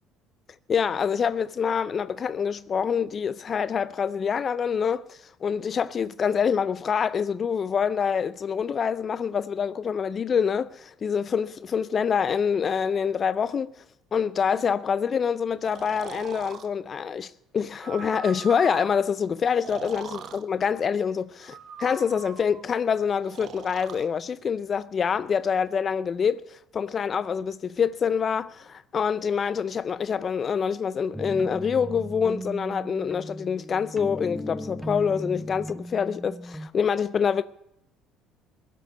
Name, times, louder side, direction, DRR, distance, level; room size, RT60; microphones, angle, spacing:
voice 1, 0.7-13.7 14.1-37.4, left 7 dB, 45° left, 0.4 m, -26 dB
Breathing, 15.6-16.7 17.7-19.0 19.5-20.4 21.4-22.6 23.3-24.1, right 7 dB, 55° right, 1.2 m, -40 dB
sound 1, 31.1-36.7, equal, 5° right, 1.0 m, -37 dB
17.0 x 7.6 x 8.2 m
hypercardioid pair, 65°, 0 cm